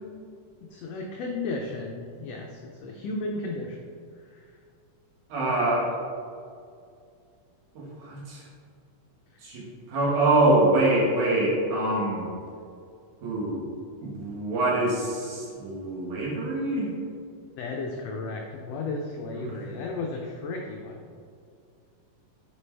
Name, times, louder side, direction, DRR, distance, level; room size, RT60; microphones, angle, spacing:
voice 1, 0.6-3.9 4.3-4.5 17.6-21.0, left 3 dB, 85° left, 1 dB, 1.4 m, -34 dB
voice 2, 5.3-6.0 7.7-8.5 9.4-12.3 13.2-13.6 14.0-16.9 19.4-19.5, right 2 dB, 75° right, -5 dB, 3.0 m, -25 dB
9.2 x 4.4 x 3.3 m, 2.4 s
omnidirectional pair, 3.6 m